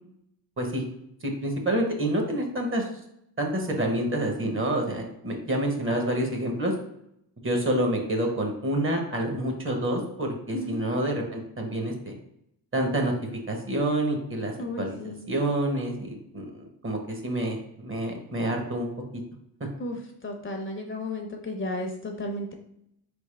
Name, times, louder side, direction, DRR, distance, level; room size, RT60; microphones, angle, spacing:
voice 1, 1.2-2.9 3.4-6.7 7.4-12.1 12.7-13.1 13.5-19.2, right 1 dB, 30° right, 3 dB, 0.9 m, -28 dB
voice 2, 14.5-15.2 19.8-22.5, left 1 dB, 30° left, 2 dB, 0.6 m, -34 dB
4.3 x 3.5 x 3.2 m, 0.77 s
wide cardioid pair, 125°, 39 cm